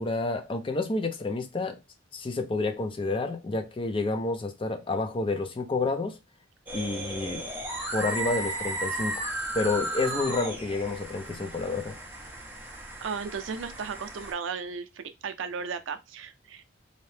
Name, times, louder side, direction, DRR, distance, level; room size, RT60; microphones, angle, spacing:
voice 1, 0.0-1.8 2.1-6.2 6.7-7.4 7.9-9.3 9.5-11.9, left 3 dB, 30° left, 0.4 m, -29 dB
sound 1, 6.7-14.3, right 2 dB, 10° right, 0.7 m, -35 dB
voice 2, 13.0-16.6, right 5 dB, 80° right, 0.4 m, -35 dB
2.7 x 2.0 x 3.2 m
head